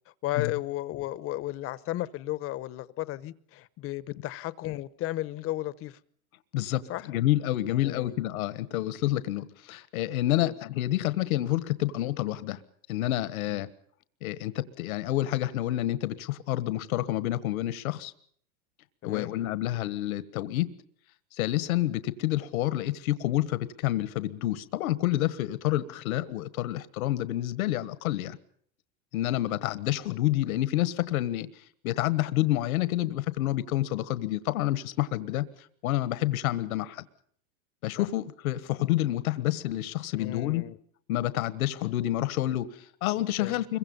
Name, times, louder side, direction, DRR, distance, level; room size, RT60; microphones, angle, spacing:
voice 1, 0.2-6.0 6.9-7.1 7.7-8.1 10.4-10.5 13.5-13.6 19.0-19.3 38.0-38.1 40.2-40.8 43.4-43.6, left 15 dB, 30° left, 0.9 m, -34 dB
voice 2, 6.5-12.6 12.9-13.7 14.2-18.1 19.0-20.7 21.3-28.4 29.1-31.5 31.8-35.4 35.8-37.0 37.8-40.7 41.1-43.8, left 15 dB, 75° left, 1.5 m, -28 dB
26.0 x 23.0 x 5.4 m
supercardioid pair, 140°, 43 cm